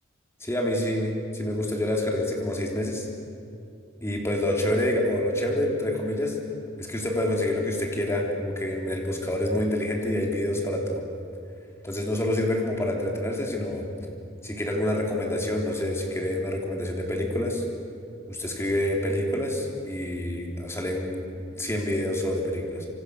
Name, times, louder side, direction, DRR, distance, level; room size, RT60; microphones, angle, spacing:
voice 1, 0.4-3.1 4.0-6.4 6.8-11.0 11.8-13.9 14.4-17.6 18.3-22.9, left 1 dB, 15° left, 0 dB, 3.5 m, -27 dB
27.5 x 26.0 x 6.5 m, 2.5 s
head